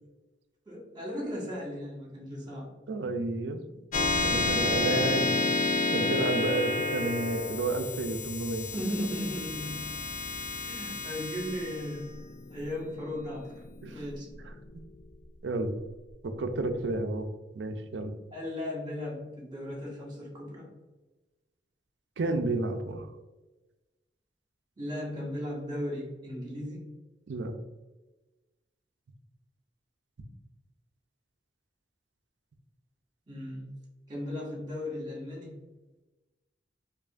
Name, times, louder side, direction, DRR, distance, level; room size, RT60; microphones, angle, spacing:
voice 1, 0.6-2.7 8.7-10.0 10.6-12.2 12.5-13.5 13.9-14.3 18.3-20.7 24.8-26.9 33.3-33.7 34.1-35.6, left 1 dB, 25° right, -3 dB, 1.4 m, -36 dB
voice 2, 2.9-3.6 4.1-5.3 5.9-8.7 13.8-14.0 15.4-15.7 16.2-17.3 17.5-18.1 22.2-23.1 27.3-27.5, right 2 dB, 85° right, 7 dB, 0.5 m, -31 dB
sound 1, 3.9-14.8, left 3 dB, 45° left, 0.3 m, -30 dB
4.8 x 2.6 x 2.5 m, 1.1 s
head